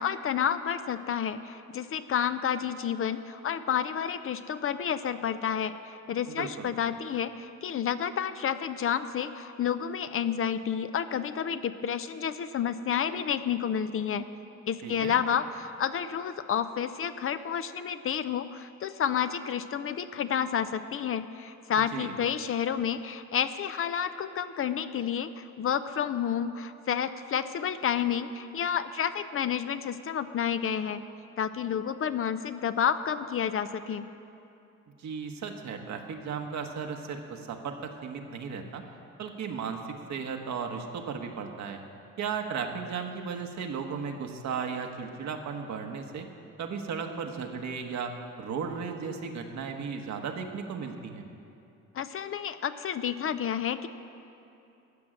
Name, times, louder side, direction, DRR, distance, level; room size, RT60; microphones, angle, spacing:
voice 1, 0.0-14.2 14.7-31.0 31.4-34.1 51.9-53.9, left 8 dB, 45° left, 12 dB, 0.5 m, -30 dB
voice 2, 6.3-6.7 14.8-15.1 21.9-22.1 35.0-38.8 39.2-39.8 40.1-41.8 42.2-46.3 46.6-51.3, right 6 dB, 65° right, 4 dB, 1.3 m, -35 dB
13.0 x 6.2 x 8.7 m, 2.7 s
cardioid pair, 90°, 30 cm